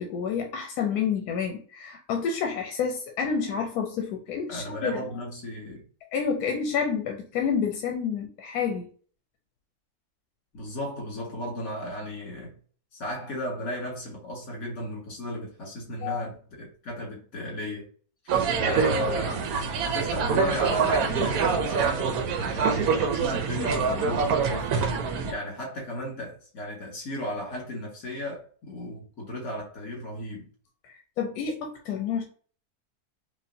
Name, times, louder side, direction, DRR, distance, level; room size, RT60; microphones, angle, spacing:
voice 1, 0.0-5.0 6.1-8.9 16.0-16.2 30.8-32.2, left 6 dB, 85° left, 1.2 m, -29 dB
voice 2, 4.5-5.9 10.5-12.6 12.9-17.9 18.5-19.6 19.8-24.7 25.2-30.5, left 1 dB, 65° left, 2.3 m, -35 dB
sound 1, 18.3-25.3, right 5 dB, 75° right, 1.1 m, -25 dB
5.0 x 2.4 x 2.7 m
omnidirectional pair, 1.6 m